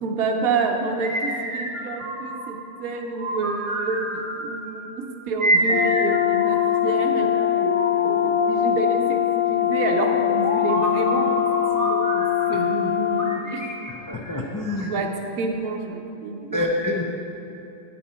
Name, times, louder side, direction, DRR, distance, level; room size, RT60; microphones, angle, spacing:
voice 1, 0.0-9.2 9.5-11.5 11.7-13.6 14.7-15.1 15.4-16.7, right 4 dB, 80° right, 1 dB, 1.2 m, -28 dB
sound 1, 0.9-2.6 3.1-4.7 5.4-7.0 7.7-8.9 10.0-12.7 13.2-15.0, right 1 dB, 20° right, 1.8 m, -28 dB
Brass instrument, 5.7-13.4, left 12 dB, 65° left, 0.8 m, -22 dB
voice 2, 14.1-14.9 16.5-17.0, left 2 dB, 25° left, -2 dB, 0.4 m, -26 dB
9.8 x 9.4 x 4.3 m, 2.9 s
omnidirectional pair, 1.5 m